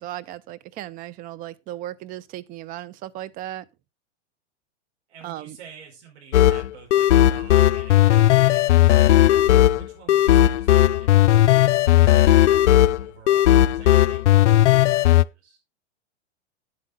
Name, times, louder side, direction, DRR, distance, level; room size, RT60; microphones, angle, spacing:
voice 1, 0.0-3.7 5.2-5.6, right 13 dB, 25° right, 0.5 m, -36 dB
voice 2, 5.1-8.7 9.5-15.6, right 6 dB, 65° right, 4.9 m, -48 dB
sound 1, 6.3-15.2, left 13 dB, 80° left, 0.5 m, -16 dB
9.7 x 8.3 x 3.7 m
hypercardioid pair, 135°, 35 cm